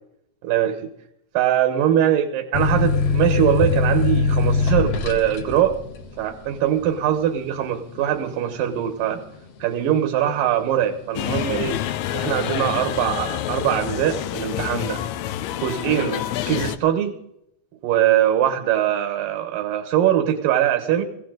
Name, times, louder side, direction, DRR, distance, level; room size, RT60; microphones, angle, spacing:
voice 1, 0.4-0.8 1.3-5.8 6.2-9.2 9.6-11.8 12.1-15.0 15.6-17.1 17.8-21.0, right 10 dB, 90° right, 4 dB, 2.8 m, -22 dB
sound 1, 2.5-9.8 10.2-11.0, left 4 dB, 60° left, 1.8 m, -23 dB
sound 2, 11.2-16.8, left 12 dB, 80° left, 1.7 m, -27 dB
19.0 x 16.5 x 3.9 m, 0.81 s
omnidirectional pair, 3.9 m